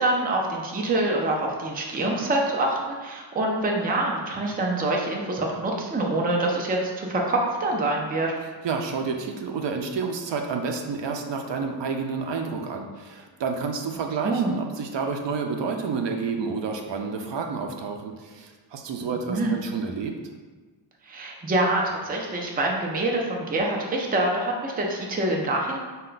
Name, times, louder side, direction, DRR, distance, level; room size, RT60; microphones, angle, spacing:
voice 1, 0.0-8.3 14.2-14.5 19.3-19.5 21.0-25.8, right 2 dB, 20° right, -1 dB, 0.4 m, -25 dB
voice 2, 8.6-20.1, right 5 dB, 65° right, 3 dB, 0.5 m, -30 dB
5.4 x 2.2 x 3.9 m, 1.4 s
wide cardioid pair, 160°, 47 cm